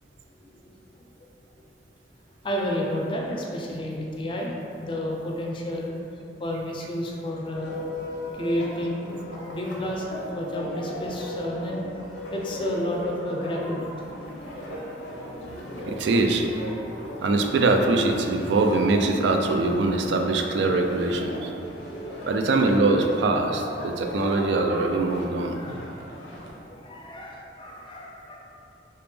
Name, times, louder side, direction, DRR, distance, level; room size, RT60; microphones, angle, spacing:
voice 1, 0.3-0.7 2.4-6.0 6.4-7.8 8.3-9.1 9.5-11.8 12.3-13.9 25.5-25.8 26.1-26.2 26.6-28.4, left 1 dB, 30° left, -1 dB, 0.4 m, -31 dB
sound 1, 7.5-26.5, equal, 80° left, 0.7 m, -37 dB
voice 2, 15.8-16.4 17.2-21.5 22.3-25.6, right 3 dB, 75° right, 4 dB, 0.3 m, -23 dB
3.3 x 2.9 x 3.3 m, 2.7 s
head